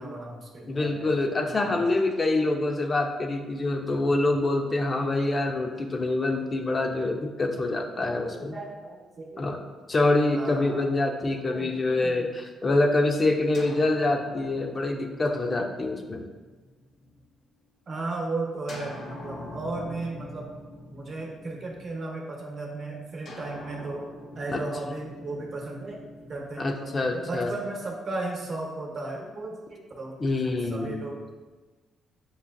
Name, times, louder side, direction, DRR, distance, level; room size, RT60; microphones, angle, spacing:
voice 1, 0.0-1.1 1.6-1.8 7.6-9.6 10.3-10.9 11.5-12.3 17.9-20.5 20.9-26.0 26.3-30.2 30.7-31.2, right 2 dB, 45° right, -1 dB, 0.9 m, -35 dB
voice 2, 0.7-8.6 9.4-9.6 9.9-16.3 24.5-24.6 26.6-27.5 30.2-31.0, left 2 dB, 35° left, 3 dB, 0.4 m, -26 dB
sound 1, 13.5-17.3 18.7-22.2 23.2-27.4, left 1 dB, 60° left, 0.8 m, -44 dB
6.9 x 2.4 x 2.3 m, 1.3 s
cardioid pair, 90°, 0 cm